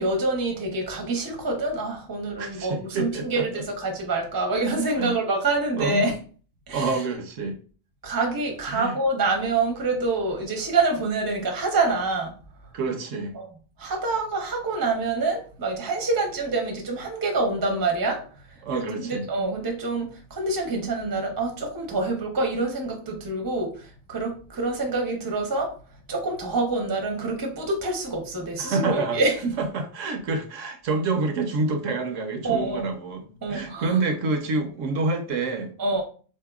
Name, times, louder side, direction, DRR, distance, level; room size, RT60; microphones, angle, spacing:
voice 1, 0.0-6.1 6.7-7.0 8.0-12.3 13.3-13.5 13.8-25.7 26.1-29.5 32.4-32.9 33.4-34.0 35.8-36.0, right 3 dB, 25° right, 0.5 m, -26 dB
voice 2, 2.4-3.6 5.0-5.2 5.8-6.2 6.7-7.6 8.7-8.9 12.7-13.3 18.6-19.2 28.6-29.2 29.6-35.7, right 3 dB, 75° right, 1.0 m, -27 dB
4.1 x 2.7 x 2.3 m
omnidirectional pair, 1.4 m